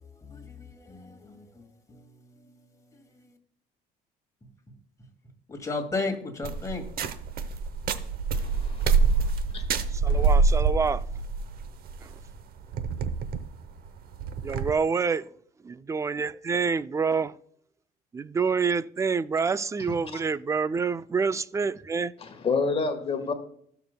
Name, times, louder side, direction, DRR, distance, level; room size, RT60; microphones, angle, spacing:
voice 1, 0.8-1.5 5.5-6.8 10.1-10.3, left 3 dB, 20° left, 2.3 m, -33 dB
sound 1, 6.4-14.7, right 4 dB, 60° right, 0.8 m, -26 dB
voice 2, 8.3-9.3 9.5-9.6 20.1-20.2 22.2-23.3, left 4 dB, 35° left, 1.5 m, -29 dB
voice 3, 9.9-11.0 14.4-15.3 15.9-17.3 18.1-22.1, right 5 dB, 20° right, 0.3 m, -27 dB
16.0 x 6.9 x 2.2 m
cardioid pair, 110°, 17 cm